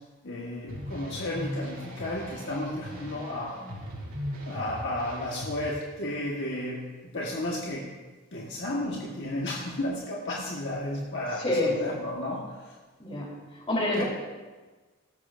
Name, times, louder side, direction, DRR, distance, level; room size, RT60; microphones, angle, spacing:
voice 1, 0.2-3.6 4.5-6.8 7.1-7.9 8.3-12.7 13.9-14.0, left 1 dB, 55° left, -3 dB, 1.4 m, -33 dB
sound 1, 0.7-5.7, equal, 65° right, 2.7 m, -39 dB
voice 2, 11.4-11.8 13.0-13.3 13.7-14.0, left 1 dB, 25° left, -3 dB, 3.3 m, -26 dB
18.0 x 13.5 x 2.6 m, 1.3 s
head